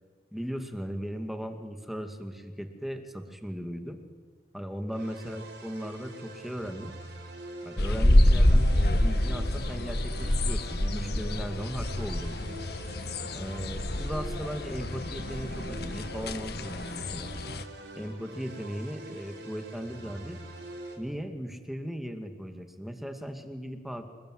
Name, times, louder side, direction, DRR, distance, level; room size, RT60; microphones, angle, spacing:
voice 1, 0.3-4.0 4.5-6.9 7.6-12.4 13.3-17.3 17.9-20.4 21.0-24.0, equal, ahead, 6 dB, 2.4 m, -37 dB
sound 1, 4.9-21.0, right 1 dB, 80° right, 5.3 m, -45 dB
sound 2, 7.8-17.6, left 1 dB, 65° left, 1.5 m, -27 dB
28.5 x 21.5 x 9.6 m, 1.5 s
head